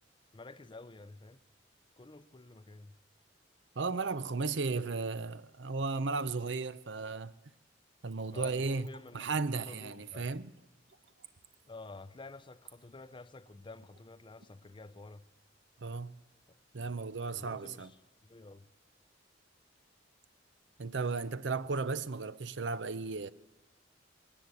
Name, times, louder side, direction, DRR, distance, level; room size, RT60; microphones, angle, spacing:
voice 1, 0.3-1.4 2.0-2.9 8.2-10.4 11.6-15.3 17.3-18.0 18.2-18.7, left 3 dB, 25° left, 0.6 m, -50 dB
voice 2, 3.8-7.3 8.0-8.9 9.1-10.5 15.8-16.1 16.7-17.9 20.8-23.3, right 4 dB, 70° right, 0.7 m, -35 dB
Splash splatter / Trickle dribble, 8.1-14.5 14.8-14.9, right 9 dB, 90° right, 1.3 m, -52 dB
21.5 x 18.5 x 8.3 m
head